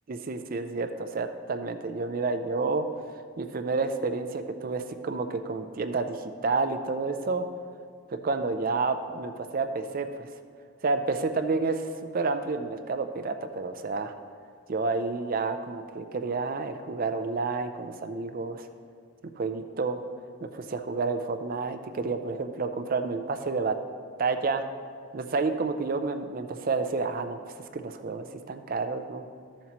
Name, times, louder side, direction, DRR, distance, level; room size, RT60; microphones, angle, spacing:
voice 1, 0.1-2.9 3.1-7.4 8.2-10.3 10.8-14.1 14.7-18.7 19.4-20.0 20.4-23.8 24.2-24.7 25.1-29.2, right 4 dB, 40° right, 8 dB, 0.4 m, -30 dB
13.5 x 7.2 x 3.0 m, 2.2 s
head